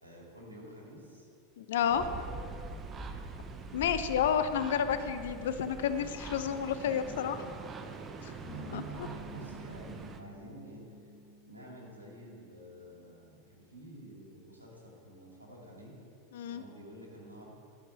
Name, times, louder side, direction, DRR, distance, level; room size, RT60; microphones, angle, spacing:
voice 1, 0.0-1.3 1.7-2.3 8.5-11.1 11.5-16.0 16.5-17.6, equal, 90° right, -3 dB, 2.0 m, -50 dB
voice 2, 1.6-2.0 3.7-7.4 8.2-8.3 8.7-8.8 16.3-16.6, left 8 dB, 65° left, 10 dB, 0.6 m, -30 dB
sound 1, 1.9-10.2, right 4 dB, 25° right, 0.7 m, -44 dB
sound 2, 8.4-12.7, right 2 dB, 10° right, 2.4 m, -47 dB
11.5 x 5.4 x 5.0 m, 2.7 s
figure-of-eight pair, 85°, 0 cm